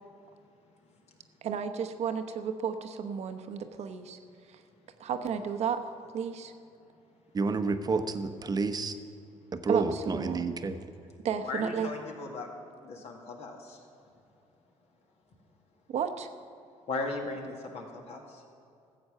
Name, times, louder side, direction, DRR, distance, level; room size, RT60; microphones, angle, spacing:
voice 1, 1.4-4.2 5.0-6.5 9.7-10.4 11.2-11.9 15.9-16.3, right 7 dB, 65° right, 8 dB, 0.9 m, -33 dB
voice 2, 7.3-8.9 9.5-10.8, right 4 dB, 35° right, 9 dB, 0.9 m, -29 dB
voice 3, 11.4-12.5 12.8-13.9 16.9-18.4, left 3 dB, 60° left, 1 dB, 2.2 m, -37 dB
14.0 x 7.9 x 6.7 m, 2.6 s
cardioid pair, 85°, 12 cm